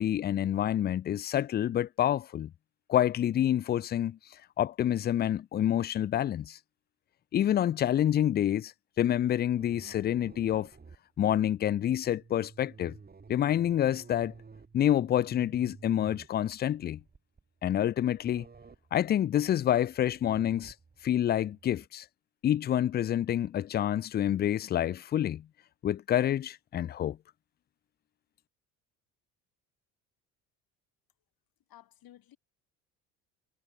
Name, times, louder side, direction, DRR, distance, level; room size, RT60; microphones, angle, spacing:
voice 1, 0.0-2.5 2.9-4.2 4.6-6.6 7.3-8.7 9.0-10.7 11.2-12.9 13.3-14.3 14.7-17.0 17.6-18.5 18.9-20.7 21.0-22.0 22.4-25.5 25.8-27.2, left 11 dB, 25° left, 0.4 m, -27 dB
sound 1, 9.6-21.9, right 4 dB, 25° right, 2.5 m, -54 dB
voice 2, 31.7-32.4, left 12 dB, 60° left, 6.6 m, -55 dB
hypercardioid pair, 70°, 41 cm